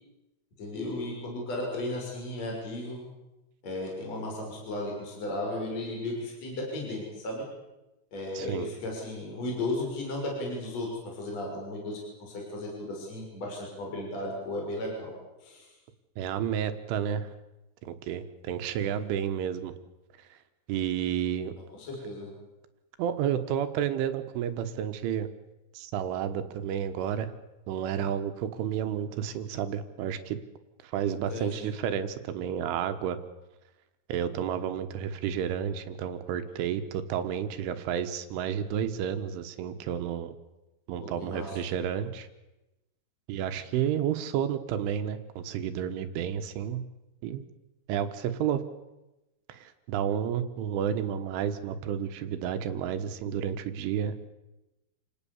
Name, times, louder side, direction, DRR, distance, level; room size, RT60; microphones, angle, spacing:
voice 1, 0.6-3.1 3.6-7.4 8.1-15.1 15.4-15.7 21.8-22.3 31.3-31.7 41.0-41.6, left 1 dB, 30° left, -1 dB, 7.0 m, -35 dB
voice 2, 8.4-8.7 16.2-17.3 17.8-19.7 20.7-21.5 23.0-25.3 25.8-27.3 27.7-30.4 30.8-33.2 34.1-40.4 40.9-42.3 43.3-46.8 47.2-47.5 47.9-48.6 49.5-54.3, right 9 dB, 75° right, 9 dB, 3.7 m, -31 dB
29.0 x 19.0 x 7.2 m, 1.0 s
omnidirectional pair, 5.9 m